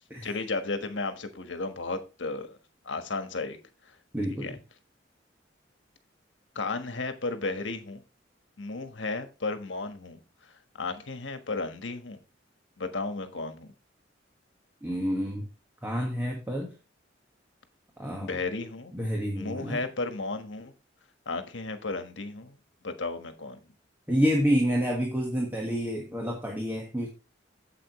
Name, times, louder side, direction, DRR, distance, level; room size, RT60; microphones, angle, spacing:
voice 1, 0.2-2.6 2.8-3.6 3.9-4.0 4.3-4.6 6.5-8.0 8.6-12.2 12.8-13.7 18.2-18.9 19.3-20.7 21.2-22.6 22.8-23.6, left 3 dB, 70° left, 8 dB, 1.4 m, -34 dB
voice 2, 4.1-4.6 14.8-15.5 15.8-16.7 18.0-18.3 18.9-19.8 24.1-27.1, equal, 10° right, -1 dB, 1.7 m, -28 dB
8.6 x 7.9 x 3.1 m, 0.31 s
head